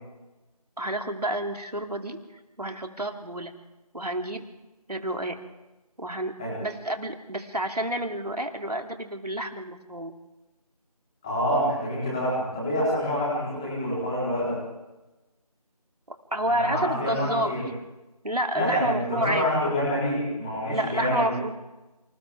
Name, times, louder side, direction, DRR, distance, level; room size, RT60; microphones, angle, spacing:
voice 1, 0.8-2.2 2.6-3.5 3.9-4.4 4.9-5.4 6.0-10.1 16.3-17.6 18.2-19.5 20.7-21.5, right 1 dB, 80° right, 4 dB, 2.9 m, -29 dB
voice 2, 11.2-14.6 16.5-17.6 18.5-21.3, equal, 10° left, -7 dB, 4.1 m, -27 dB
29.0 x 26.5 x 3.6 m, 1.1 s
figure-of-eight pair, 170°, 20 cm